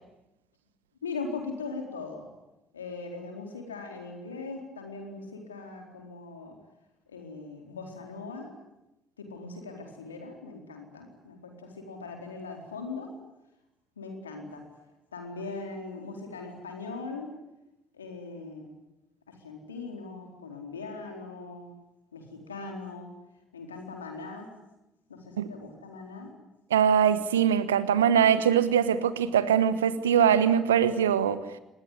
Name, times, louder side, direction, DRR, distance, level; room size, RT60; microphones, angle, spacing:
voice 1, 1.0-2.3 2.7-6.5 7.1-8.5 9.2-13.1 14.0-14.6 15.1-17.3 18.0-18.7 19.3-21.7 22.1-23.1 23.5-24.5 25.1-26.3, left 4 dB, 85° left, 3 dB, 4.2 m, -40 dB
voice 2, 26.7-31.4, right 8 dB, 80° right, 15 dB, 1.1 m, -22 dB
25.5 x 20.5 x 9.9 m, 0.91 s
figure-of-eight pair, 55°, 0 cm